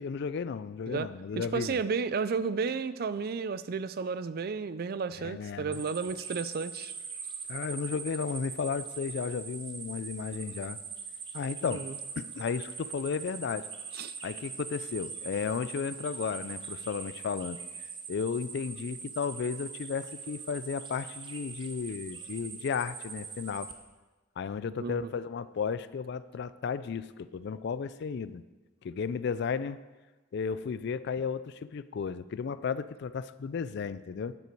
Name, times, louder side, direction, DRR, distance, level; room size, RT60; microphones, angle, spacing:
voice 1, 0.0-1.8 5.2-5.8 7.5-10.8 11.3-11.9 12.2-13.7 14.2-17.6 18.1-23.7 24.4-28.4 28.8-29.8 30.3-34.4, left 6 dB, 60° left, 16 dB, 0.4 m, -34 dB
voice 2, 1.4-6.9 11.6-12.0 13.9-14.1 24.8-25.1, right 5 dB, 50° right, 15 dB, 0.4 m, -32 dB
sound 1, 5.7-23.7, right 5 dB, 25° right, 0.7 m, -42 dB
9.4 x 8.0 x 4.6 m, 1.2 s
head